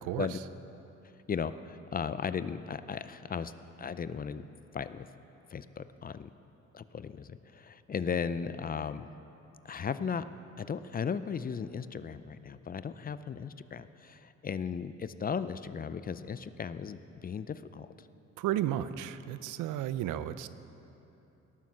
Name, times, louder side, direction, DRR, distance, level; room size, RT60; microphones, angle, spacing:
voice 1, 1.3-3.5 3.8-5.1 5.5-6.3 6.7-9.1 9.6-10.2 10.6-17.9, left 6 dB, 30° left, 13 dB, 0.4 m, -36 dB
voice 2, 18.4-20.5, right 12 dB, 85° right, 14 dB, 0.5 m, -33 dB
18.0 x 7.1 x 6.1 m, 2.9 s
cardioid pair, 90°, 30 cm